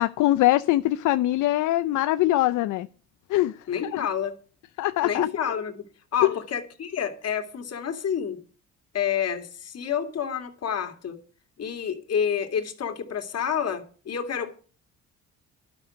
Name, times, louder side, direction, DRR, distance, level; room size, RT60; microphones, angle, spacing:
voice 1, 0.0-2.9 3.3-4.1 4.8-5.3 6.2-6.4, left 15 dB, 80° left, 0.5 m, -23 dB
voice 2, 3.7-4.4 5.0-5.8 6.1-8.4 8.9-11.2 11.6-14.5, left 8 dB, 55° left, 2.4 m, -29 dB
12.0 x 6.4 x 9.6 m
cardioid pair, 90°, 30 cm